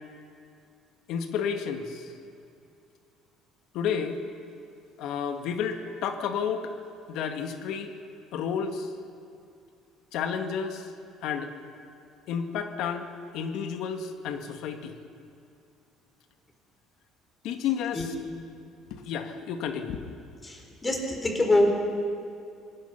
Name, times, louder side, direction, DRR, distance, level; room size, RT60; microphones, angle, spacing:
voice 1, 1.1-2.0 3.7-4.2 5.0-6.7 7.1-7.9 8.3-8.9 10.1-10.9 11.2-11.5 12.3-15.0 17.4-18.1 18.9-20.2, left 7 dB, 70° left, 6 dB, 2.0 m, -31 dB
voice 2, 20.4-21.7, left 1 dB, 15° left, 2 dB, 4.1 m, -24 dB
25.5 x 20.0 x 5.9 m, 2.5 s
cardioid pair, 135°, 0 cm